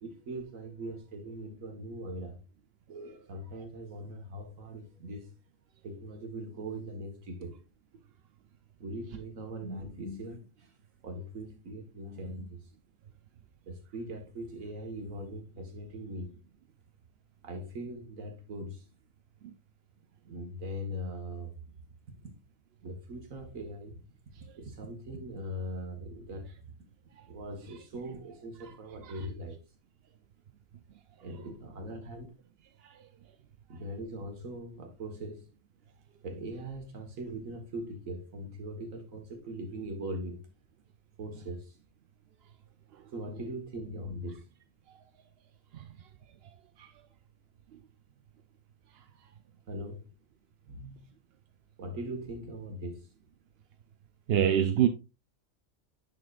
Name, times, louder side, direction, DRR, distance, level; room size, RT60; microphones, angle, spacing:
voice 1, 0.0-2.4 2.9-5.3 5.8-7.6 8.8-10.5 11.0-12.6 13.7-16.3 17.4-18.8 20.2-21.5 22.8-24.0 24.6-26.5 27.3-29.6 31.2-32.3 33.7-35.4 36.2-40.4 41.2-41.7 43.1-44.4 49.7-50.0 50.7-51.1 51.8-53.1, right 1 dB, 85° right, 1.8 m, -40 dB
voice 2, 54.3-54.9, right 9 dB, 60° right, 0.7 m, -25 dB
9.3 x 5.9 x 2.4 m
omnidirectional pair, 1.4 m